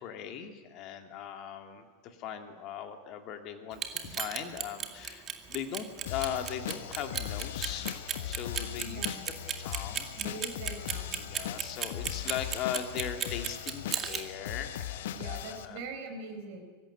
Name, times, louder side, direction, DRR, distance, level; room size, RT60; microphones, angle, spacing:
voice 1, 0.0-9.0 9.6-10.1 11.2-15.8, left 9 dB, 40° left, 6 dB, 2.5 m, -39 dB
Clock, 3.7-14.2, right 9 dB, 25° right, 2.1 m, -34 dB
sound 1, 6.1-15.7, left 12 dB, 55° left, 0.9 m, -39 dB
voice 2, 8.9-9.2 10.2-11.2 15.1-16.6, right 3 dB, 45° right, 5 dB, 4.5 m, -42 dB
24.0 x 15.5 x 9.8 m, 1.5 s
figure-of-eight pair, 90°, 0 cm